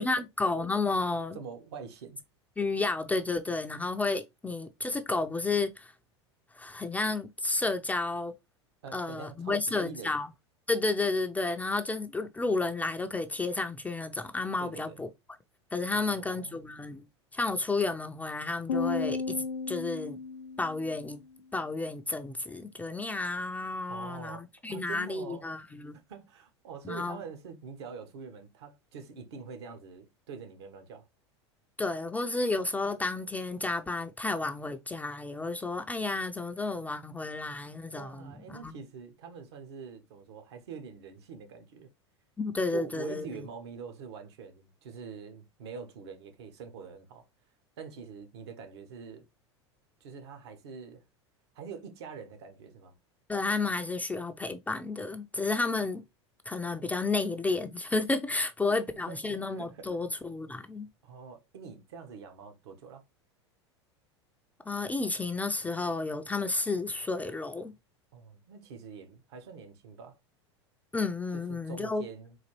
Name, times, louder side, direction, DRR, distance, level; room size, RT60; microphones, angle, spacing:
voice 1, 0.0-1.4 2.6-5.9 6.5-8.3 8.9-10.3 10.7-15.1 15.7-17.0 17.3-20.2 20.6-21.2 21.5-24.4 24.6-26.0 26.8-27.2 31.8-38.7 42.4-43.5 53.3-56.0 56.5-60.9 64.7-67.7 70.9-72.0, left 3 dB, 10° left, 0.4 m, -31 dB
voice 2, 1.3-2.2 8.8-10.2 14.6-15.0 15.9-16.6 23.9-25.5 26.1-31.1 37.9-41.9 42.7-47.3 47.8-49.3 50.0-51.0 51.5-53.0 58.6-58.8 59.1-59.9 61.0-63.0 68.1-70.2 71.3-72.4, right 6 dB, 65° right, 0.9 m, -45 dB
sound 1, 18.7-21.1, left 4 dB, 75° left, 0.5 m, -34 dB
4.0 x 2.5 x 3.0 m
hypercardioid pair, 85°, 15 cm